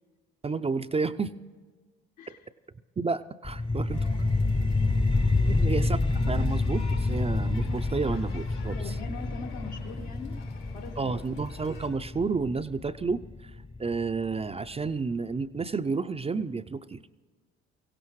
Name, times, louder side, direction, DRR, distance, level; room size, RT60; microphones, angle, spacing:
voice 1, 0.4-1.3 2.3-2.4 3.0-4.1 5.5-6.0 6.3-9.0 11.0-13.5 13.8-17.0, right 4 dB, 20° right, 9 dB, 0.5 m, -31 dB
sound 1, 3.4-14.5, left 3 dB, 15° left, 0.7 m, -28 dB
sound 2, 3.9-11.9, left 5 dB, 85° left, 4.0 m, -50 dB
voice 2, 8.7-10.4 10.7-11.2, left 4 dB, 70° left, 3 dB, 1.5 m, -42 dB
23.0 x 16.5 x 3.2 m, 1.4 s
hypercardioid pair, 55°, 31 cm